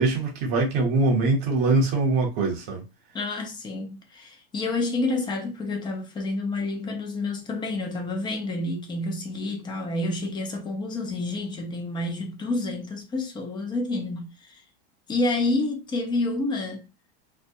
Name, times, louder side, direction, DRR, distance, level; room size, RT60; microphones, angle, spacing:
voice 1, 0.0-2.8, right 3 dB, 55° right, 0.9 m, -23 dB
voice 2, 3.1-14.6 15.1-16.8, left 2 dB, 15° left, 0.5 m, -29 dB
2.2 x 2.1 x 2.7 m
supercardioid pair, 135°, 31 cm